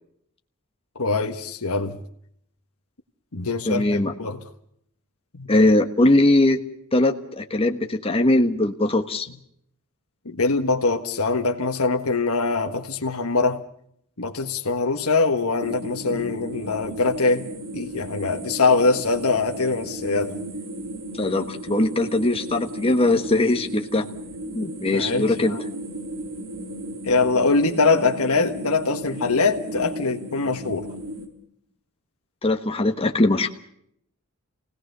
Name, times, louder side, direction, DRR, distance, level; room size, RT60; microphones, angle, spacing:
voice 1, 1.0-2.0 3.3-4.4 5.4-5.5 10.2-13.6 14.2-17.4 17.7-20.4 24.9-25.6 27.0-30.9, left 3 dB, 70° left, 1.6 m, -23 dB
voice 2, 3.6-4.1 5.5-6.6 6.9-9.3 21.2-24.1 24.5-25.6 32.4-33.5, left 2 dB, 25° left, 1.3 m, -20 dB
sound 1, 15.6-31.3, right 1 dB, 65° right, 3.8 m, -35 dB
28.0 x 18.0 x 6.7 m
head